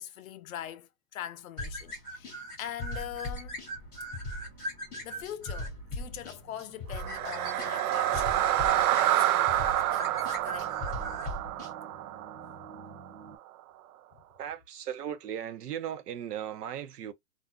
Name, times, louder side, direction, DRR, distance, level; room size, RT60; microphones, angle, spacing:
voice 1, 0.0-3.7 4.2-4.4 5.0-10.7 12.4-12.5, left 11 dB, 60° left, 0.6 m, -43 dB
sound 1, 1.6-11.7, equal, 5° left, 0.4 m, -39 dB
sound 2, 2.6-13.4, right 3 dB, 40° right, 0.8 m, -54 dB
sound 3, 6.9-13.1, right 13 dB, 70° right, 0.5 m, -28 dB
voice 2, 14.4-17.1, right 9 dB, 90° right, 0.9 m, -37 dB
2.6 x 2.4 x 2.2 m
hypercardioid pair, 165°, 46 cm